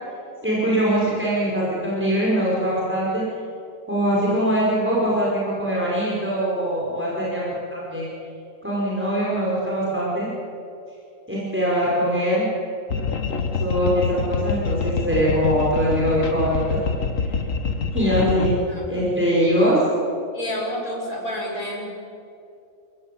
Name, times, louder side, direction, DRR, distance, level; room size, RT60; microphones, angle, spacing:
voice 1, 0.4-3.2 3.9-8.1 8.6-10.3 11.3-12.5 13.6-16.8 17.9-18.6 18.9-19.8, equal, 10° right, -6 dB, 5.4 m, -22 dB
sound 1, 12.9-18.6, left 4 dB, 70° left, 1.7 m, -26 dB
voice 2, 20.3-21.9, equal, 90° left, -1 dB, 5.7 m, -29 dB
30.0 x 15.5 x 8.7 m, 2.6 s
omnidirectional pair, 1.4 m